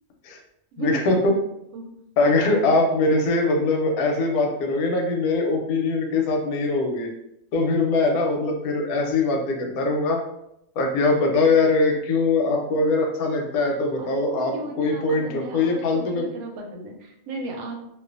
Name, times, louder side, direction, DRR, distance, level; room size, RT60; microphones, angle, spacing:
voice 1, 0.8-1.4 2.2-7.1 7.5-10.2 10.8-16.2, left 3 dB, 85° left, 2 dB, 1.0 m, -22 dB
voice 2, 13.9-17.8, right 3 dB, 90° right, 1 dB, 1.1 m, -35 dB
2.5 x 2.3 x 2.4 m, 0.80 s
omnidirectional pair, 1.5 m